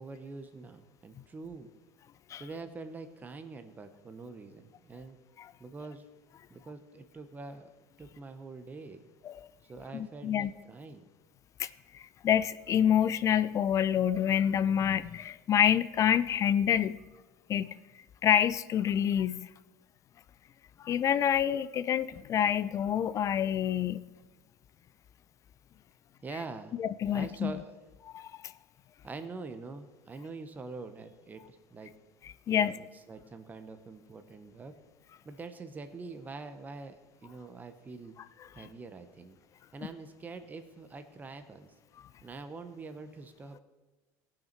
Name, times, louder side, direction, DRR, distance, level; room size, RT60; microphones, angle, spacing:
voice 1, 0.0-1.7 2.4-5.2 5.6-6.1 6.5-7.7 8.0-9.1 9.6-11.1 26.2-26.8 27.0-27.7 29.0-31.9 32.5-34.7 35.2-38.1 38.5-39.4 39.7-41.7 42.2-43.6, right 3 dB, 20° right, 8 dB, 0.8 m, -44 dB
voice 2, 9.9-10.5 11.6-11.7 12.2-17.0 17.5-17.7 18.2-19.4 20.8-24.0 26.8-27.5 28.1-28.5 32.5-32.7, left 9 dB, 35° left, 16 dB, 0.4 m, -27 dB
17.0 x 5.9 x 4.5 m, 1.2 s
supercardioid pair, 110°, 9 cm